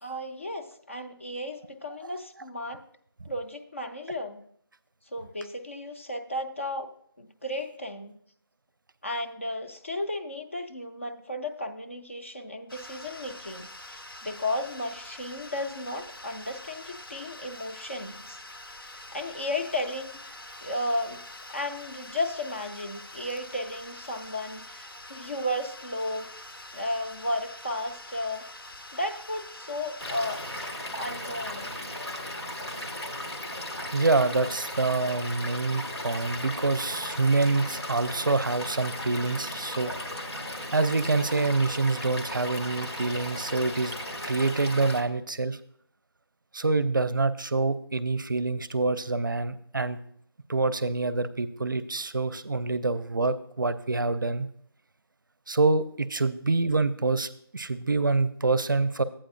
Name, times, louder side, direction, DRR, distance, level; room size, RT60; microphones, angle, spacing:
voice 1, 0.0-2.8 3.2-4.4 5.1-6.9 7.2-8.2 9.0-18.4 18.9-20.3 20.6-21.2 21.5-26.3 26.7-28.5 28.9-31.7, left 1 dB, 30° left, 5 dB, 0.5 m, -34 dB
sound 1, 12.7-30.7, left 1 dB, 60° left, 0.9 m, -45 dB
Stream / Liquid, 30.0-45.0, left 1 dB, 80° left, 1.4 m, -36 dB
voice 2, 33.9-39.9 40.7-43.9 44.2-45.6 46.5-50.0 50.5-54.5 55.5-59.0, right 3 dB, 55° right, 15 dB, 0.5 m, -26 dB
12.0 x 8.7 x 2.6 m, 0.65 s
figure-of-eight pair, 170°, 13 cm